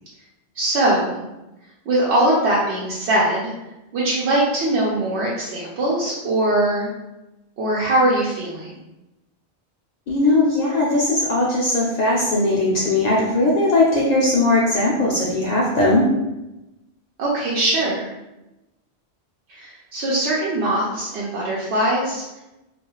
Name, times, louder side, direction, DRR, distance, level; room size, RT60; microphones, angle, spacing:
voice 1, 0.6-1.2 1.9-3.5 3.9-6.9 7.6-8.8 17.2-18.1 19.5-22.2, right 1 dB, 90° right, -6 dB, 0.9 m, -21 dB
voice 2, 10.1-16.1, left 2 dB, 55° left, -4 dB, 0.5 m, -19 dB
2.4 x 2.3 x 2.9 m, 0.97 s
omnidirectional pair, 1.1 m